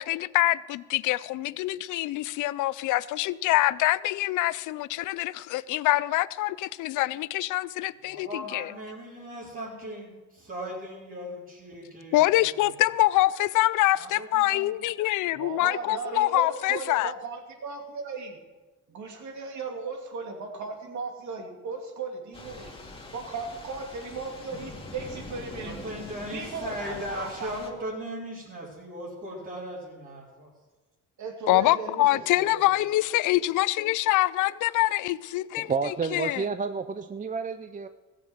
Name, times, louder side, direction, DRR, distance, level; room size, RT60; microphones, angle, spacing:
voice 1, 0.0-8.7 12.1-17.1 31.5-35.7 36.1-36.4, left 17 dB, 85° left, 0.5 m, -25 dB
voice 2, 8.0-12.6 13.9-14.8 25.6-30.5, equal, 45° right, 4.2 m, -38 dB
voice 3, 15.3-18.4 18.9-26.0 26.3-27.5 31.2-32.9, right 4 dB, 70° right, 2.6 m, -37 dB
Thunder / Rain, 22.3-27.7, left 3 dB, 20° left, 2.3 m, -43 dB
voice 4, 35.6-37.9, right 5 dB, 25° right, 0.5 m, -30 dB
15.5 x 7.6 x 7.8 m
cardioid pair, 90°, 30 cm